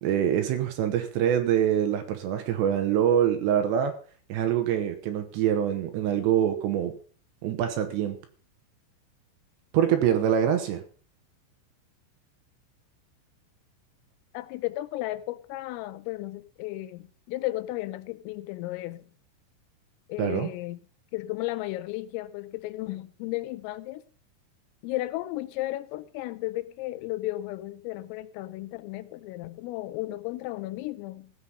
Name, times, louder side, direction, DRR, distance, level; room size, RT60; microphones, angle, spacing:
voice 1, 0.0-3.9 4.3-6.9 7.4-8.2 9.7-10.8 20.2-20.5, right 9 dB, 70° right, 2.9 m, -25 dB
voice 2, 14.3-19.1 20.1-20.8 21.1-24.0 24.8-31.3, left 17 dB, 85° left, 3.4 m, -34 dB
16.5 x 7.6 x 5.5 m
omnidirectional pair, 5.9 m